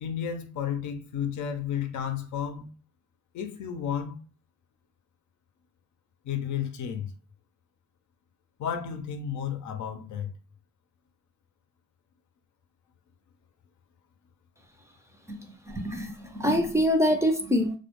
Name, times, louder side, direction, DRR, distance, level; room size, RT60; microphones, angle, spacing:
voice 1, 0.0-2.7 3.3-4.2 6.2-7.1 8.6-10.3, left 8 dB, 70° left, 0.5 m, -32 dB
voice 2, 15.7-17.8, equal, 10° right, 0.4 m, -25 dB
2.1 x 2.1 x 2.9 m
cardioid pair, 90°, 30 cm